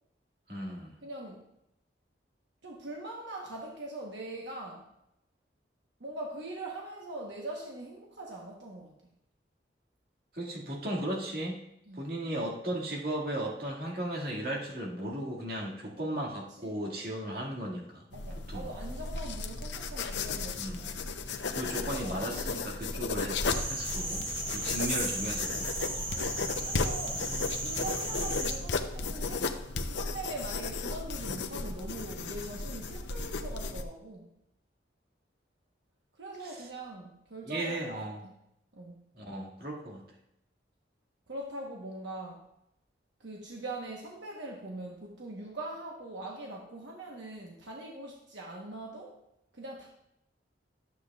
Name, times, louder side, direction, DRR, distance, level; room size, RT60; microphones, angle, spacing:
voice 1, 0.5-0.9 10.3-11.6 12.0-18.0 18.5-18.7 20.6-20.9 21.5-24.2 24.5-25.7 36.4-36.5 37.5-38.2 39.2-40.0, right 1 dB, 55° right, -2 dB, 2.1 m, -36 dB
voice 2, 1.0-1.5 2.6-4.9 6.0-8.9 11.9-12.0 16.6-16.8 18.1-21.0 21.6-22.2 26.1-27.3 27.6-29.5 29.9-34.4 36.2-38.3 38.7-39.1 41.3-42.4 43.2-49.2 49.5-49.9, right 2 dB, 80° right, -1 dB, 1.1 m, -42 dB
sound 1, 18.1-33.8, left 4 dB, 80° left, 0.7 m, -35 dB
sound 2, 23.5-28.6, right 1 dB, 30° right, 1.8 m, -35 dB
12.5 x 8.1 x 2.4 m, 0.81 s
head